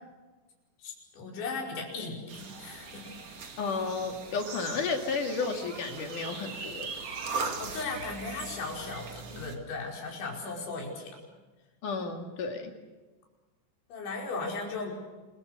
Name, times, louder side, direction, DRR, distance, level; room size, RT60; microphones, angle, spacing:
voice 1, 0.8-3.1 7.6-11.2 13.9-15.0, left 3 dB, 70° left, 0 dB, 7.5 m, -37 dB
sound 1, 2.3-9.6, right 4 dB, 40° right, 2.6 m, -39 dB
voice 2, 3.6-6.9 11.8-12.7, left 4 dB, 50° left, 4 dB, 3.4 m, -32 dB
27.5 x 23.0 x 6.7 m, 1.2 s
omnidirectional pair, 5.5 m